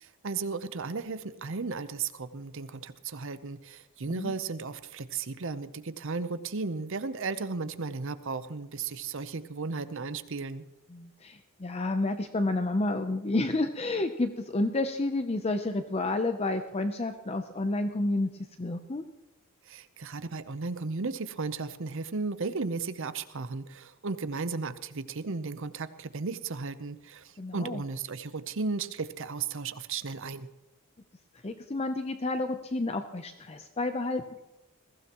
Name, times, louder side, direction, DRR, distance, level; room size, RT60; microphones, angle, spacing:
voice 1, 0.0-10.6 19.7-30.5, right 4 dB, 60° right, 13 dB, 0.7 m, -35 dB
voice 2, 10.9-18.3 18.6-19.0 27.4-27.8 31.4-34.4, left 2 dB, 30° left, 8 dB, 0.6 m, -30 dB
21.0 x 15.5 x 3.0 m, 1.0 s
head